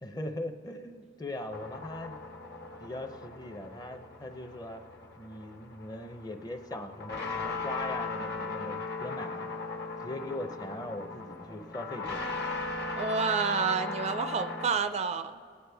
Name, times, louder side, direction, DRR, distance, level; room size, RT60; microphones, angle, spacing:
voice 1, 0.0-2.1 2.8-4.8 5.2-9.5 10.0-12.3, left 1 dB, 20° left, 7 dB, 0.6 m, -40 dB
sound 1, 1.5-14.7, left 3 dB, 60° left, 1.4 m, -38 dB
voice 2, 13.0-15.4, right 5 dB, 35° right, 9 dB, 0.4 m, -29 dB
24.5 x 9.5 x 3.4 m, 2.2 s
head